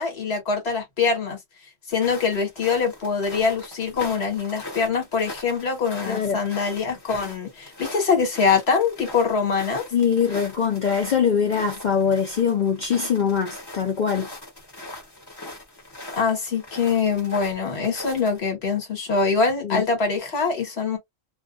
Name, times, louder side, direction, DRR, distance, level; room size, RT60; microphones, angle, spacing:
voice 1, 0.0-1.4 1.9-9.8 16.1-21.0, left 5 dB, 55° left, 1.4 m, -24 dB
sound 1, 1.9-18.4, left 1 dB, 20° left, 1.0 m, -41 dB
voice 2, 6.1-6.4 9.9-14.3 19.6-19.8, left 7 dB, 80° left, 0.4 m, -22 dB
2.4 x 2.3 x 2.4 m
omnidirectional pair, 1.3 m